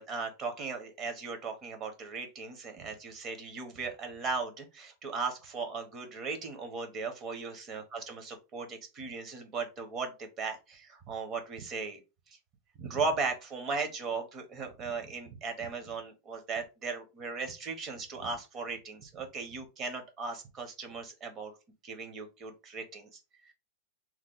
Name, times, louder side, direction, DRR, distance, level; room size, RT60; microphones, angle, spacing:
voice 1, 0.0-12.0 12.3-12.4 12.8-21.6 21.8-23.5, right 4 dB, 25° right, 6 dB, 0.7 m, -37 dB
2.9 x 2.1 x 3.6 m, 0.27 s
supercardioid pair, 165°, 0 cm